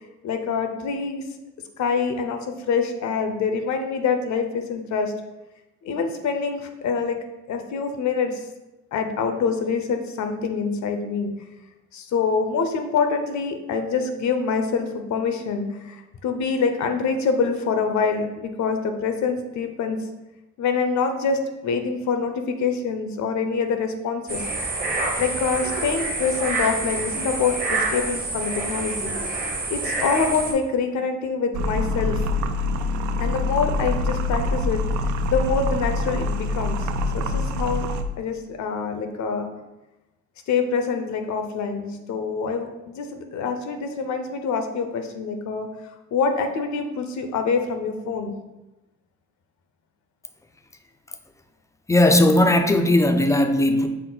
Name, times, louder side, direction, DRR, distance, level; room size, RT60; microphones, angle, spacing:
voice 1, 0.2-1.2 1.8-2.4 2.7-5.1 5.8-7.2 7.5-8.4 8.9-11.3 11.9-20.0 20.6-24.4 25.2-29.1 29.7-32.2 33.2-34.8 35.3-36.9 37.1-37.9 38.2-39.5 40.5-45.7 46.1-48.3, left 5 dB, 70° left, 6 dB, 0.6 m, -25 dB
sound 1, 24.3-30.5, right 2 dB, 30° right, 0.9 m, -27 dB
sound 2, 31.5-38.0, left 2 dB, 70° right, 0.4 m, -25 dB
voice 2, 51.9-53.9, left 1 dB, 10° left, 6 dB, 0.3 m, -17 dB
5.7 x 2.1 x 3.9 m, 1.0 s
cardioid pair, 90°, 30 cm